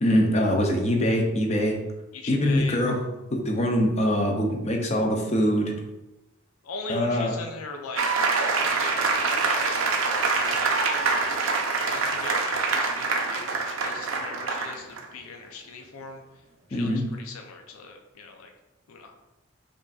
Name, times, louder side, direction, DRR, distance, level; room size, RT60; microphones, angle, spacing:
voice 1, 0.0-1.8 2.3-3.0 3.3-5.7 6.9-7.3 16.7-17.0, equal, 30° left, 2 dB, 0.5 m, -23 dB
voice 2, 2.1-2.8 6.6-8.0 8.7-9.1 9.4-10.7 11.9-16.2 16.7-18.5 18.9-19.1, left 4 dB, 90° left, 3 dB, 0.4 m, -40 dB
sound 1, 7.9-15.0, right 4 dB, 75° right, 0.5 m, -25 dB
5.1 x 2.5 x 2.3 m, 1.0 s
head